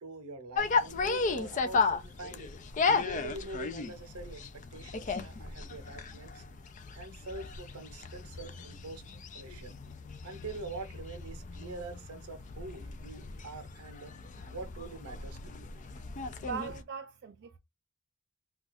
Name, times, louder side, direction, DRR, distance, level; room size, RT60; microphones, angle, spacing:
voice 1, 0.0-2.6 3.0-6.4 6.9-9.7 10.2-14.1 14.5-15.7 17.5-17.6, right 3 dB, 80° right, 0.7 m, -44 dB
sound 1, 0.6-16.8, left 4 dB, 35° left, 0.3 m, -35 dB
voice 2, 16.4-17.6, right 7 dB, 50° right, 0.3 m, -40 dB
2.3 x 2.3 x 4.0 m
head